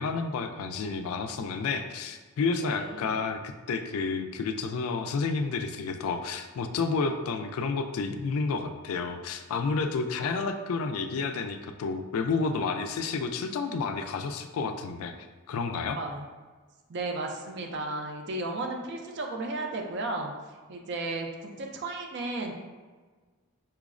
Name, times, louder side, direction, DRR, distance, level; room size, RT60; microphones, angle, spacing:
voice 1, 0.0-15.1 15.5-16.0, left 4 dB, 75° left, 7 dB, 0.3 m, -30 dB
voice 2, 2.6-3.1 15.9-16.2 16.9-20.3 20.7-22.5, right 2 dB, 50° right, 2 dB, 0.4 m, -34 dB
5.4 x 2.0 x 2.4 m, 1.3 s
head